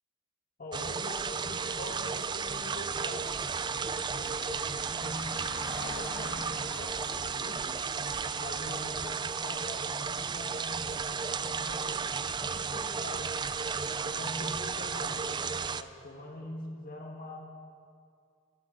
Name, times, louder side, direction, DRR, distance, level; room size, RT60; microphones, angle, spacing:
voice 1, 0.6-3.3 4.1-5.4 5.8-7.9 8.4-13.4 14.0-17.4, left 1 dB, 45° left, 1 dB, 1.5 m, -44 dB
sound 1, 0.7-15.8, right 5 dB, 20° right, 0.4 m, -34 dB
Car passing by / Engine, 2.3-9.1, left 2 dB, 75° left, 1.6 m, -47 dB
18.5 x 12.0 x 5.4 m, 2.3 s
head